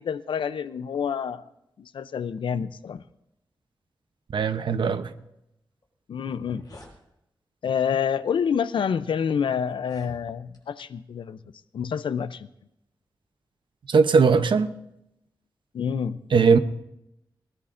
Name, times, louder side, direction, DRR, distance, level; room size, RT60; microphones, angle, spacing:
voice 1, 0.0-1.5 1.8-3.0 6.1-6.6 7.6-12.5 15.7-16.2, left 7 dB, 90° left, 0.5 m, -28 dB
voice 2, 4.3-5.1 13.9-14.7 16.3-16.6, right 5 dB, 75° right, 0.8 m, -19 dB
sound 1, 5.8-5.9 6.2-7.0 7.8-8.0 8.7-8.8 9.7-10.6, left 2 dB, 55° left, 5.1 m, -48 dB
20.5 x 19.5 x 2.6 m
wide cardioid pair, 80°, 8 cm